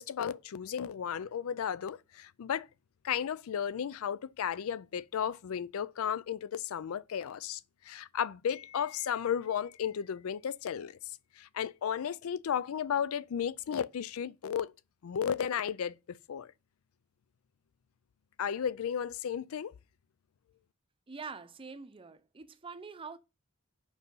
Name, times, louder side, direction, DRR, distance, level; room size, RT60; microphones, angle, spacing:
voice 1, 0.0-2.7 3.0-14.7 15.0-16.5 18.4-19.7, left 8 dB, 75° left, 0.4 m, -34 dB
voice 2, 21.1-23.2, right 5 dB, 25° right, 0.6 m, -45 dB
6.1 x 5.4 x 5.4 m
head